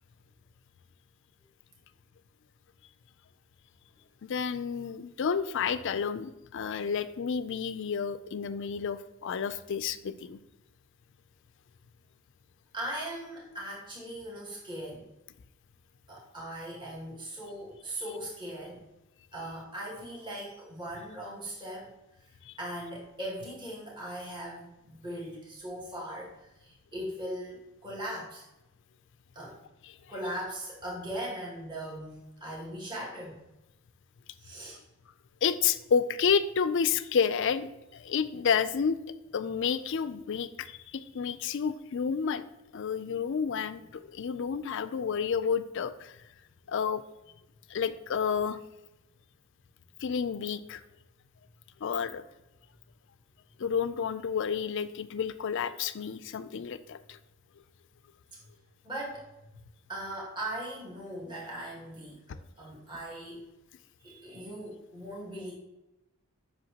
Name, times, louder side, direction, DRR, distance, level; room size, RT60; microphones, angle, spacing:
voice 1, 4.2-10.4 22.5-22.6 29.8-30.0 35.4-39.0 39.3-42.5 42.7-46.2 46.7-47.0 47.7-48.6 50.0-50.8 51.8-52.2 53.6-57.2, left 6 dB, 55° left, 13 dB, 0.4 m, -30 dB
voice 2, 12.7-15.1 16.1-18.8 19.3-21.9 22.2-28.5 29.3-29.6 30.1-33.4 34.3-34.8 58.8-59.3 59.9-63.4 64.0-65.5, right 1 dB, 20° right, -5 dB, 1.5 m, -39 dB
7.9 x 5.5 x 2.9 m, 0.96 s
head